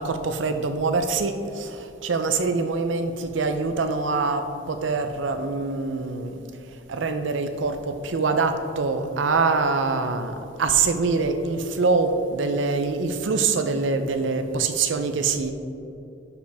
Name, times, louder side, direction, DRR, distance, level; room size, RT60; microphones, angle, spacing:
voice 1, 0.0-6.3 6.9-15.5, right 4 dB, 70° right, 8 dB, 0.6 m, -24 dB
11.5 x 5.1 x 3.5 m, 2.8 s
head